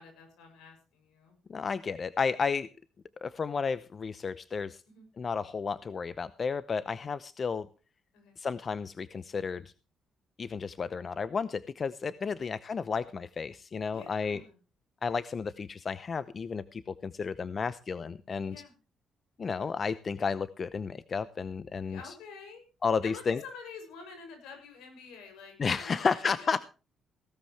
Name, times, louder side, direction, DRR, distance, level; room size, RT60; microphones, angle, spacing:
voice 1, 0.0-1.4 4.9-5.1 8.1-8.4 12.4-12.5 13.9-14.6 18.5-18.7 21.9-22.6 23.0-26.6, left 5 dB, 85° left, 5 dB, 7.2 m, -48 dB
voice 2, 1.5-2.7 3.2-4.8 5.2-7.7 8.4-9.7 10.4-14.4 15.0-18.5 19.4-22.0 22.8-23.4 25.6-26.6, left 5 dB, 45° left, 15 dB, 0.7 m, -32 dB
17.5 x 13.0 x 3.3 m, 0.34 s
supercardioid pair, 65°, 0 cm